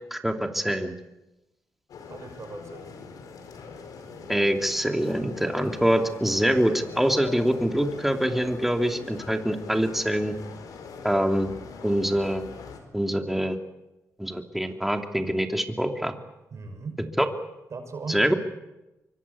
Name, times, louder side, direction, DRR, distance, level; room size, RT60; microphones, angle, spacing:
voice 1, 0.1-1.0 4.3-10.4 11.0-11.5 11.8-12.4 12.9-13.6 14.2-16.1 17.2-17.3 18.1-18.3, equal, 5° right, 4 dB, 2.7 m, -24 dB
sound 1, 1.9-12.8, left 5 dB, 80° left, 4.7 m, -41 dB
voice 2, 2.1-3.0 16.5-17.0 17.7-18.4, right 4 dB, 55° right, 6 dB, 6.0 m, -38 dB
25.5 x 24.0 x 8.5 m, 1.0 s
cardioid pair, 85°, 6 cm